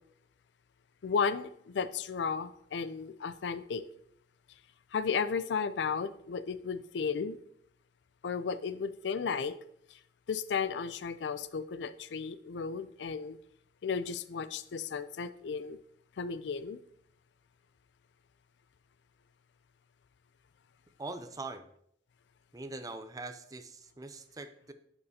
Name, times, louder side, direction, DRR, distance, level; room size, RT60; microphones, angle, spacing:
voice 1, 1.0-3.8 4.9-7.4 8.2-9.6 9.9-10.0 10.3-13.4 13.8-15.8 16.2-16.8, left 5 dB, 80° left, 0.4 m, -34 dB
voice 2, 21.0-21.7 22.5-24.7, right 3 dB, 20° right, 0.5 m, -42 dB
10.5 x 5.4 x 2.8 m
head